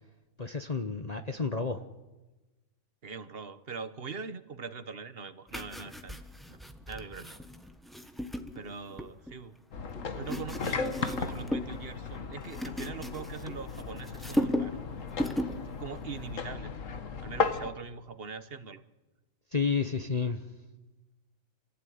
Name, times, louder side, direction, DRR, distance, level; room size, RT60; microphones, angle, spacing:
voice 1, 0.4-1.8 19.5-20.4, left 5 dB, 30° left, 6 dB, 1.0 m, -30 dB
voice 2, 3.0-6.2 6.5-7.4 8.5-9.5 10.1-14.8 15.6-16.7 17.2-18.8, right 5 dB, 45° right, 12 dB, 1.3 m, -42 dB
sound 1, 5.5-9.4 9.9-11.8 12.1-13.8 14.1-14.8 15.1-15.6 16.0-16.2, equal, ahead, 1.2 m, -35 dB
sound 2, 9.7-17.7, left 5 dB, 65° left, 1.7 m, -36 dB
27.0 x 16.0 x 9.5 m, 1.1 s
omnidirectional pair, 1.5 m